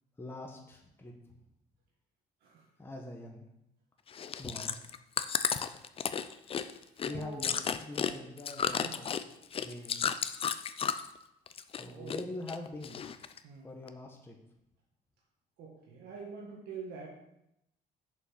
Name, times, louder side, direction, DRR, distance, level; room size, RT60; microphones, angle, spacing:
voice 1, 0.2-1.1 2.8-3.5 4.4-4.8 7.0-9.1 9.6-10.0 11.8-13.0 13.6-14.4, left 2 dB, 15° left, 1 dB, 1.1 m, -43 dB
Chewing mastication, 4.1-11.2 11.5-12.2 12.5-13.4 13.9-14.0, left 7 dB, 35° left, 0.5 m, -33 dB
voice 2, 7.1-7.5 8.7-9.0 11.9-12.2 13.4-13.7 15.6-17.1, right 5 dB, 75° right, -2 dB, 1.6 m, -45 dB
6.5 x 5.5 x 5.7 m, 0.83 s
cardioid pair, 110°, 17 cm